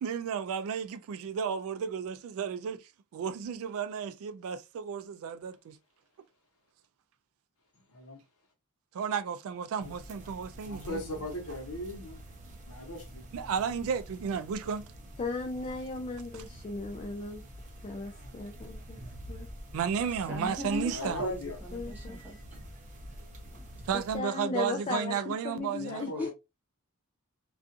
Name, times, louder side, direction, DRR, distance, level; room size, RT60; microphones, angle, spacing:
voice 1, 0.0-2.8 3.1-5.8 8.9-11.2 13.3-14.9 16.3-16.4 19.7-21.2 23.9-26.1, right 7 dB, 65° right, 0.3 m, -33 dB
sound 1, 9.8-24.2, equal, 35° right, 0.7 m, -47 dB
voice 2, 10.6-12.2 12.7-13.3 17.1-17.2 20.9-21.6 25.8-26.3, left 1 dB, 70° left, 0.9 m, -39 dB
voice 3, 15.2-17.4 17.8-19.0 19.3-19.5 21.7-22.2 23.9-26.3, left 3 dB, 25° left, 0.3 m, -36 dB
voice 4, 20.3-22.4 23.4-23.7 26.2-26.3, left 1 dB, 10° right, 0.9 m, -39 dB
2.4 x 2.4 x 2.6 m
head